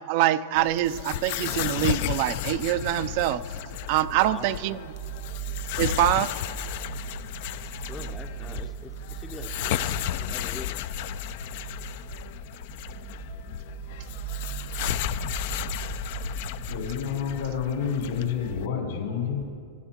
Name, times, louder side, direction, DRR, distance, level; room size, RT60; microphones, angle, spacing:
voice 1, 0.0-3.4 3.9-4.8 5.8-6.3, right 13 dB, 50° right, 14 dB, 0.4 m, -24 dB
sound 1, 0.6-18.7, left 12 dB, 55° left, 0.4 m, -33 dB
sound 2, 2.4-17.0, right 12 dB, 70° right, 1.2 m, -39 dB
voice 2, 4.1-4.9 7.9-10.9, left 3 dB, 15° left, 5 dB, 0.6 m, -44 dB
voice 3, 16.7-19.4, left 7 dB, 80° left, -1 dB, 3.8 m, -29 dB
22.5 x 11.0 x 2.9 m, 2.2 s
hypercardioid pair, 135°, 0 cm